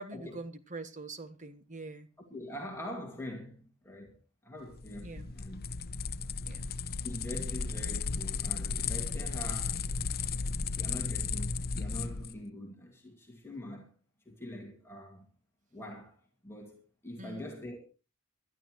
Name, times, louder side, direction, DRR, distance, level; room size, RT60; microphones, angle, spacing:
voice 1, 0.0-2.1 5.0-5.3 6.4-6.7 17.2-17.5, right 3 dB, 35° right, 1.2 m, -44 dB
voice 2, 2.3-4.2 4.4-5.6 7.0-9.9 10.7-13.9 14.3-15.3 15.7-16.2 16.4-17.8, left 1 dB, 10° left, 2.2 m, -44 dB
sound 1, 4.7-12.4, left 5 dB, 45° left, 0.7 m, -35 dB
21.0 x 12.0 x 3.1 m
head